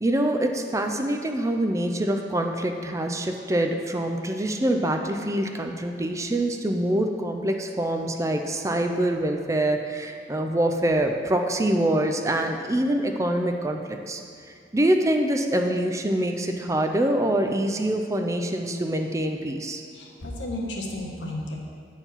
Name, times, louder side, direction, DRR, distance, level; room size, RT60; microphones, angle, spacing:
voice 1, 0.0-14.2 14.7-19.8, right 1 dB, 15° right, 4 dB, 0.4 m, -25 dB
voice 2, 19.9-21.6, left 1 dB, 90° left, -1 dB, 1.2 m, -33 dB
8.4 x 4.5 x 5.7 m, 2.2 s
head